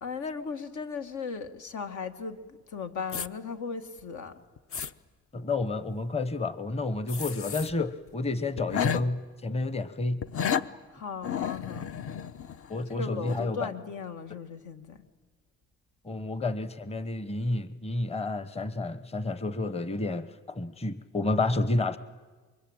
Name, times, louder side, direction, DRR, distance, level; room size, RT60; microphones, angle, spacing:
voice 1, 0.0-4.3 10.9-11.9 12.9-15.0, left 5 dB, 75° left, 7 dB, 2.0 m, -37 dB
sound 1, 3.1-3.3 4.0-4.1 4.6-4.9 7.1-7.7 8.1-8.2 8.6-9.0 10.2-10.7 11.2-12.9 13.3-13.4, left 8 dB, 50° left, 0.9 m, -32 dB
voice 2, 5.3-10.3 12.7-13.7 16.0-22.0, left 2 dB, 20° left, 14 dB, 1.1 m, -30 dB
28.5 x 23.5 x 8.9 m, 1.4 s
cardioid pair, 90°, 30 cm